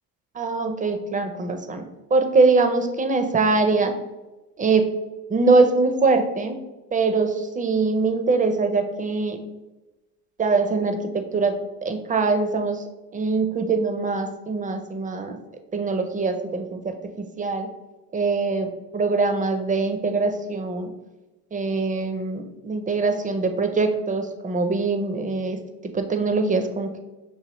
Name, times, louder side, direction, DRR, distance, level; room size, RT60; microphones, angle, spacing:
voice 1, 0.4-1.8 2.1-3.9 4.6-4.9 5.3-6.6 6.9-9.4 10.4-11.5 11.8-12.8 13.1-15.4 15.7-17.0 17.4-17.7 18.1-20.9 21.5-27.0, right 3 dB, 20° right, 7 dB, 0.4 m, -23 dB
6.1 x 2.6 x 3.0 m, 1.1 s
supercardioid pair, 80°, 46 cm